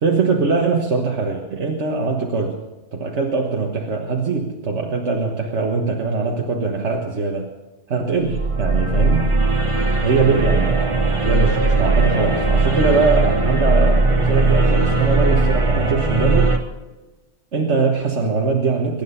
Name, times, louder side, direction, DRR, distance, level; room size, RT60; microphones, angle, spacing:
voice 1, 0.0-2.6 2.9-7.5 7.9-9.3 10.0-10.7 11.2-16.5 17.5-19.0, right 4 dB, 85° right, 0 dB, 1.7 m, -21 dB
sound 1, 8.2-16.6, right 3 dB, 30° right, 1.2 m, -18 dB
23.0 x 10.5 x 5.7 m, 1.1 s
omnidirectional pair, 1.1 m